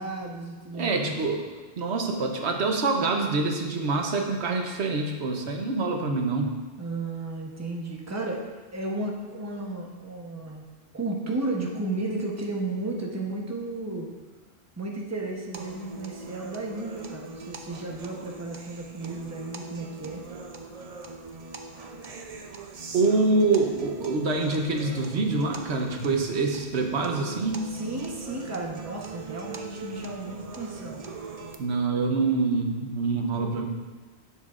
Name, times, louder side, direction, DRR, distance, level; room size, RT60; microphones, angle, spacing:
voice 1, 0.0-1.1 6.8-10.6 10.9-14.1 14.8-20.2 27.7-31.0, right 2 dB, 15° right, -1 dB, 0.9 m, -33 dB
voice 2, 0.7-1.4 1.8-6.5 22.9-27.6 31.6-33.7, right 3 dB, 90° right, 3 dB, 1.2 m, -25 dB
sound 1, 15.5-31.6, right 3 dB, 45° right, 0.6 m, -41 dB
11.0 x 7.2 x 2.5 m, 1.3 s
omnidirectional pair, 1.1 m